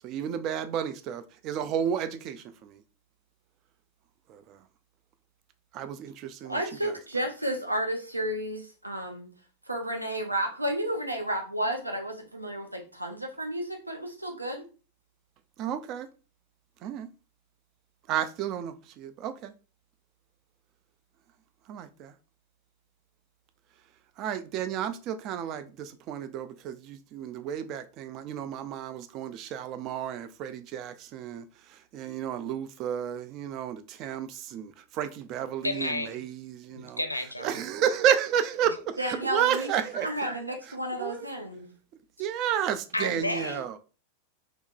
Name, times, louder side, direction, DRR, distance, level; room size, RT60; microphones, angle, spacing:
voice 1, 0.0-2.8 4.3-4.6 5.7-6.6 15.6-16.1 16.8-17.1 18.1-19.5 21.7-22.1 24.2-31.5 31.9-37.0 37.4-40.1 40.9-41.3 42.2-43.8, right 9 dB, 40° right, 0.3 m, -31 dB
voice 2, 6.4-9.3 9.7-14.6 39.0-41.7, right 1 dB, 85° right, 0.6 m, -32 dB
voice 3, 35.6-36.2 36.7-37.6 42.9-43.8, left 1 dB, 85° left, 0.4 m, -32 dB
3.5 x 2.9 x 2.3 m
figure-of-eight pair, 90°, 0 cm